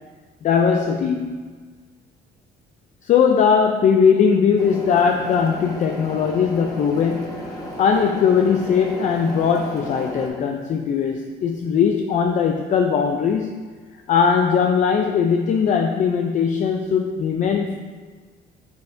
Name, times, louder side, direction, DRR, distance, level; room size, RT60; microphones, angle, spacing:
voice 1, 0.4-1.6 3.0-13.6 14.1-17.7, left 6 dB, 45° left, 3 dB, 0.5 m, -19 dB
sound 1, 4.6-10.3, equal, 20° left, 1.6 m, -34 dB
9.2 x 5.4 x 2.6 m, 1.5 s
cardioid pair, 110°, 17 cm